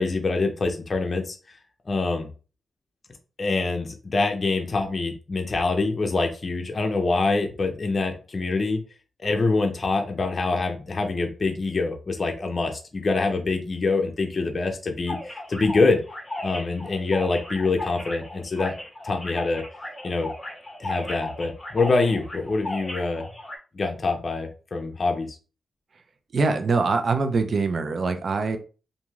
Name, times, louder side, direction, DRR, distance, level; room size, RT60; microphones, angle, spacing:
voice 1, 0.0-1.4 1.9-2.3 3.4-8.8 9.2-15.2 15.5-16.0 16.4-18.7 19.0-19.6 20.0-20.3 20.8-23.2 23.7-25.3, left 3 dB, 45° left, 4 dB, 0.5 m, -25 dB
sound 1, 15.1-23.6, left 1 dB, 15° left, 1.0 m, -36 dB
voice 2, 26.3-28.6, right 4 dB, 55° right, 7 dB, 0.4 m, -23 dB
2.9 x 2.6 x 2.3 m, 0.35 s
cardioid pair, 75°, 0 cm